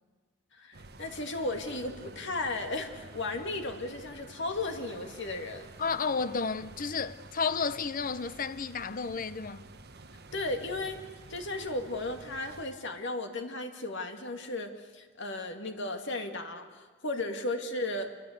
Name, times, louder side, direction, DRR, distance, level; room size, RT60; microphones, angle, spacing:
voice 1, 0.6-5.7 10.3-11.0 11.3-18.1, left 2 dB, 55° left, 2.4 m, -35 dB
sound 1, 0.7-12.6, right 2 dB, 50° right, 1.5 m, -50 dB
voice 2, 5.8-9.6, left 5 dB, 40° left, 0.7 m, -32 dB
27.0 x 24.0 x 8.2 m
head